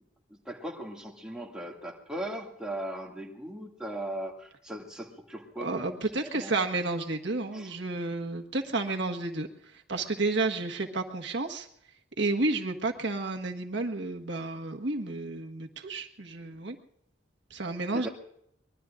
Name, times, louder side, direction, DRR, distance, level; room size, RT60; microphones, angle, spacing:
voice 1, 0.5-6.5 7.5-7.7 17.9-18.1, right 1 dB, 5° right, -1 dB, 2.2 m, -38 dB
voice 2, 5.6-9.5 9.9-11.7 12.2-16.7 17.5-18.1, right 3 dB, 65° right, 3 dB, 1.5 m, -31 dB
24.0 x 21.5 x 2.5 m, 0.72 s
head